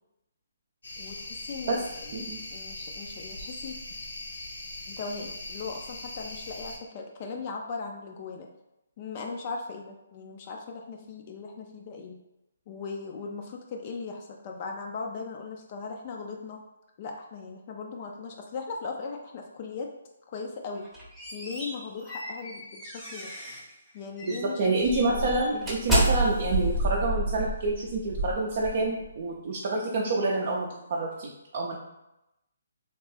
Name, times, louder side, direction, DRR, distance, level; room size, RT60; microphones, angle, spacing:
sound 1, 0.8-6.8, left 2 dB, 75° left, 0.7 m, -40 dB
voice 1, 1.0-3.8 4.9-8.5 9.0-12.2 12.7-16.6 17.0-19.9 20.3-20.8 21.3-23.3 23.9-25.7, left 4 dB, 40° left, 2 dB, 0.4 m, -38 dB
sound 2, 20.8-23.7 24.2-24.4 24.8-29.1, right 1 dB, 5° right, 0.7 m, -30 dB
voice 2, 24.3-31.8, right 2 dB, 50° right, -3 dB, 0.4 m, -28 dB
2.9 x 2.1 x 3.1 m, 0.90 s
hypercardioid pair, 145°, 0 cm